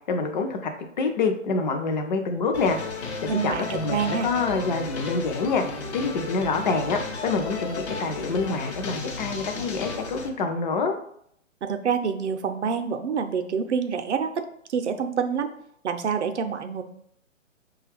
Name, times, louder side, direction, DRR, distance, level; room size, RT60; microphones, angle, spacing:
voice 1, 0.1-2.8 3.2-5.6 5.9-11.0, left 4 dB, 35° left, 4 dB, 0.5 m, -26 dB
sound 1, 2.5-10.3, left 4 dB, 55° left, 0.9 m, -34 dB
voice 2, 3.3-4.3 11.6-15.5 15.8-16.8, right 6 dB, 60° right, 7 dB, 0.6 m, -27 dB
5.4 x 2.3 x 3.3 m, 0.69 s
figure-of-eight pair, 130°, 39 cm